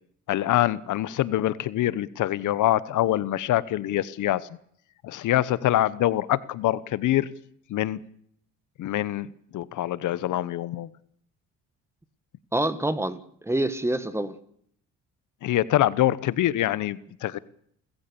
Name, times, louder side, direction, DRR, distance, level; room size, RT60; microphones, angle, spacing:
voice 1, 0.3-4.4 5.0-7.3 7.7-8.0 8.8-9.3 9.5-10.9 15.4-17.4, left 14 dB, 65° left, 1.0 m, -24 dB
voice 2, 12.5-14.4, right 1 dB, 10° right, 1.5 m, -27 dB
29.0 x 14.5 x 6.9 m
cardioid pair, 105°, 32 cm